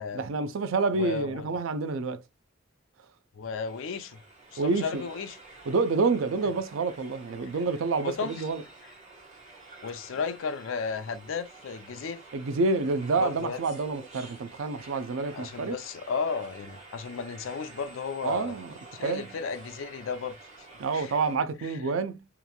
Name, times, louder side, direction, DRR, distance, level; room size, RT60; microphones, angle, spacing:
voice 1, 0.1-2.2 4.6-5.0 5.7-8.6 12.3-15.8 18.2-18.7 19.0-19.3 20.8-22.3, right 3 dB, 75° right, 0.4 m, -28 dB
voice 2, 0.9-1.5 3.3-4.2 4.5-5.4 8.0-8.4 9.8-12.2 13.2-13.6 15.3-18.6 18.9-20.4 20.9-21.2, left 5 dB, 70° left, 0.4 m, -34 dB
sound 1, 3.7-21.4, right 3 dB, 35° right, 1.3 m, -49 dB
2.9 x 2.5 x 2.2 m
head